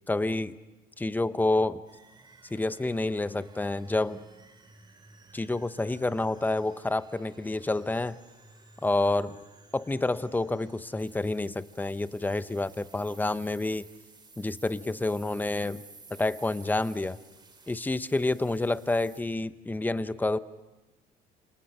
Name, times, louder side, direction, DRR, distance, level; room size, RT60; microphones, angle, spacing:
voice 1, 0.1-0.6 1.0-1.8 2.5-4.2 5.3-8.2 8.8-9.4 9.7-13.9 14.4-15.8 16.1-17.2 17.7-20.4, left 2 dB, 10° left, 13 dB, 0.8 m, -28 dB
sound 1, 1.9-19.2, right 3 dB, 25° right, 3.2 m, -55 dB
28.5 x 27.5 x 5.9 m, 1.1 s
cardioid pair, 110°, 17 cm